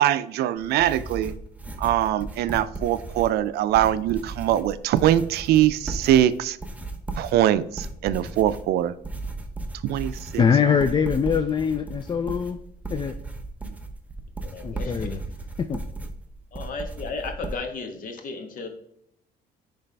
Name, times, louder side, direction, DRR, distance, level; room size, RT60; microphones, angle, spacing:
voice 1, 0.0-1.3 1.8-6.6 7.2-8.9 9.7-10.8 13.6-13.8, right 12 dB, 70° right, 14 dB, 0.4 m, -22 dB
sound 1, 0.6-17.6, right 2 dB, 10° right, 0.7 m, -36 dB
voice 2, 10.4-12.6 12.9-13.1 14.6-15.2 15.6-15.8, left 6 dB, 25° left, 9 dB, 0.3 m, -23 dB
voice 3, 14.4-15.2 16.5-18.7, left 4 dB, 55° left, 5 dB, 1.2 m, -34 dB
9.8 x 3.4 x 3.4 m, 0.76 s
cardioid pair, 110°, 17 cm